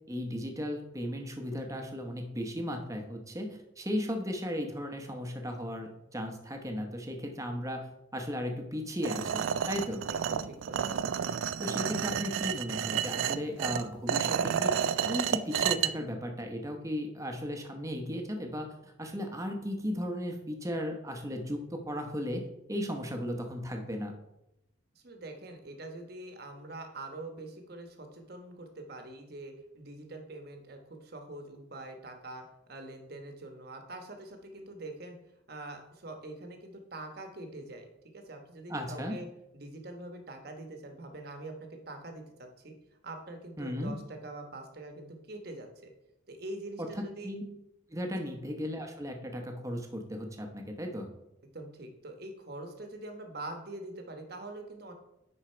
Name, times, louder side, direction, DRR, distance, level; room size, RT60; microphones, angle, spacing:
voice 1, 0.1-10.1 11.6-14.7 15.0-22.4 22.7-24.1 38.7-39.2 43.6-43.9 46.8-47.4 47.9-51.1, equal, 15° right, 4 dB, 1.0 m, -36 dB
sound 1, 9.0-15.9, right 8 dB, 85° right, 0.4 m, -31 dB
voice 2, 10.1-11.3 24.9-35.2 35.5-37.9 38.1-39.3 39.5-42.7 43.0-45.9 46.3-47.3 48.2-48.3 51.5-54.9, right 2 dB, 55° right, 4 dB, 1.3 m, -44 dB
10.0 x 4.4 x 4.5 m, 0.88 s
head